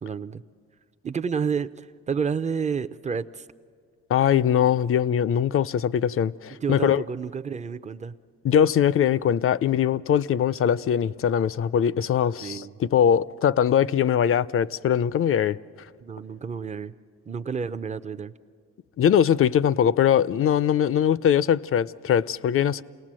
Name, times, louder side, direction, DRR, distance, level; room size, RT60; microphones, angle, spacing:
voice 1, 0.0-0.4 1.0-3.5 6.5-8.1 12.4-12.8 16.0-16.9 17.3-18.3, right 6 dB, 25° right, 0.6 m, -30 dB
voice 2, 4.1-7.0 8.4-15.6 19.0-22.8, left 9 dB, 45° left, 0.5 m, -21 dB
28.0 x 18.0 x 7.5 m
cardioid pair, 90°, 30 cm